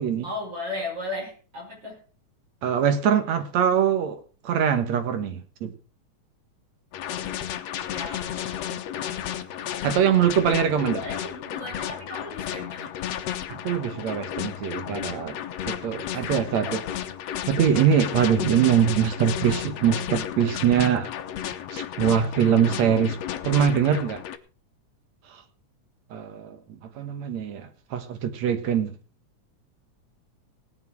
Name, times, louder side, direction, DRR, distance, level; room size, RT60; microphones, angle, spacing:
voice 1, 0.2-2.0 7.9-8.8 10.9-12.9 16.0-16.7, left 2 dB, 40° right, 6.9 m, -36 dB
voice 2, 2.6-5.7 9.8-11.0 13.5-15.4 15.7-16.8 17.5-21.1 21.7-23.2 23.4-24.2 25.3-25.4 26.1-28.9, right 8 dB, 70° right, 2.7 m, -23 dB
sound 1, 6.9-24.4, left 10 dB, 70° left, 2.1 m, -33 dB
17.5 x 10.0 x 4.6 m
omnidirectional pair, 3.3 m